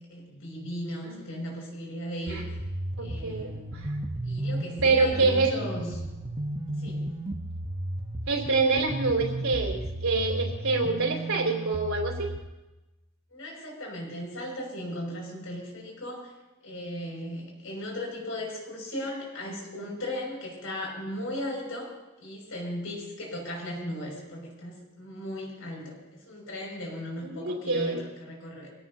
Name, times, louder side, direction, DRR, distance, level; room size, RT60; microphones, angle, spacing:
voice 1, 0.0-2.6 3.0-3.8 4.2-5.9 6.8-7.1 13.3-16.3 16.6-21.9 22.2-28.7, left 1 dB, 75° left, -1 dB, 6.1 m, -37 dB
sound 1, 2.3-12.4, right 1 dB, 30° right, 1.1 m, -34 dB
voice 2, 3.0-3.9 4.8-5.6 8.3-12.3 27.2-28.0, right 3 dB, 80° right, 0 dB, 3.4 m, -26 dB
23.5 x 17.5 x 2.8 m, 1.0 s
head